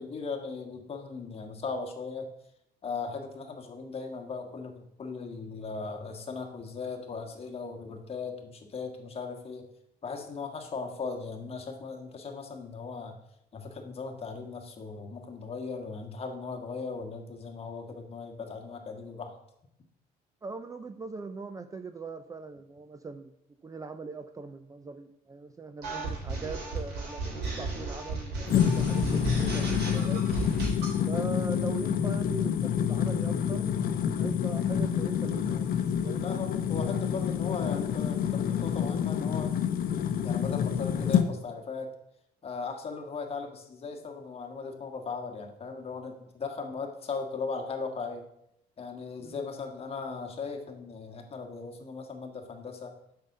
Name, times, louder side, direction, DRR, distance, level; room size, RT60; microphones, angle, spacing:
voice 1, 0.0-2.3 2.8-9.7 10.0-13.2 13.5-19.4 36.2-39.6 40.2-41.9 42.4-48.3 48.8-52.9, left 4 dB, 35° left, 3 dB, 1.6 m, -38 dB
voice 2, 20.4-23.3 23.6-30.3 31.1-35.7 36.0-36.3 49.2-49.4, right 4 dB, 20° right, 10 dB, 0.5 m, -40 dB
sound 1, 25.8-31.0, right 3 dB, 75° right, 3.6 m, -34 dB
sound 2, 28.5-41.3, left 8 dB, 60° left, 0.8 m, -28 dB
7.3 x 5.7 x 6.7 m, 0.80 s
cardioid pair, 110°, 17 cm